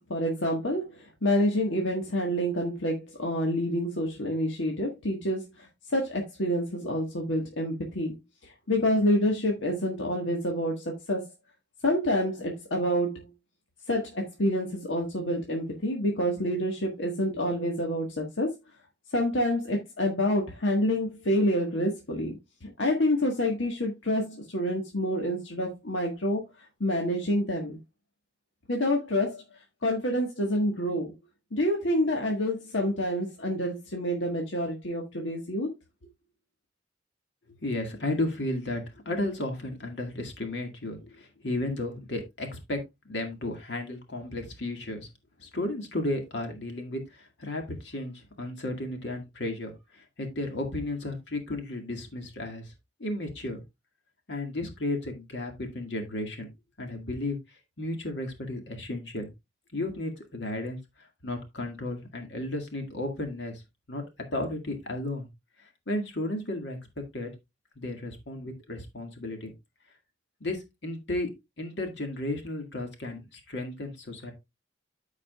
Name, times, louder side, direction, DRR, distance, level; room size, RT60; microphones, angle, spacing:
voice 1, 0.1-8.1 8.4-11.3 11.8-13.3 13.9-18.5 19.1-22.4 22.6-27.8 28.7-29.4 29.8-31.1 31.5-35.7, equal, 85° left, 1.6 m, -28 dB
voice 2, 37.6-45.1 45.4-52.7 53.0-53.6 54.3-56.5 56.8-59.3 59.7-63.6 63.9-64.0 64.3-65.3 65.6-66.8 67.1-67.3 67.8-69.5 70.4-71.3 71.6-74.3, left 1 dB, 65° left, 2.0 m, -34 dB
14.0 x 4.9 x 2.4 m
head